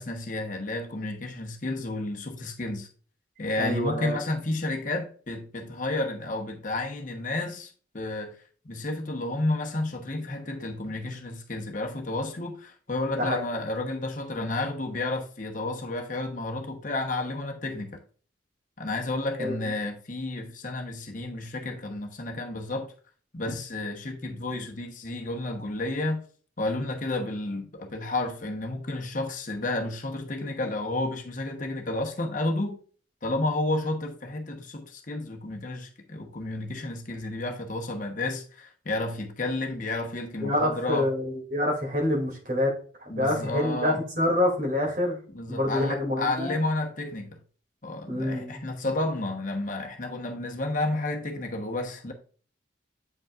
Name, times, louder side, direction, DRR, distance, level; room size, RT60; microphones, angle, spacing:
voice 1, 0.0-2.9 3.4-8.4 8.6-18.0 18.8-22.9 23.3-26.2 26.6-32.8 33.2-41.1 43.1-44.0 45.3-47.4 47.8-52.1, left 2 dB, 45° left, 0.9 m, -31 dB
voice 2, 3.6-4.2 13.2-13.4 19.4-19.5 40.4-42.7 43.0-45.2 45.5-46.5 48.1-48.6, left 1 dB, 45° right, 2.5 m, -26 dB
7.7 x 5.3 x 2.4 m
head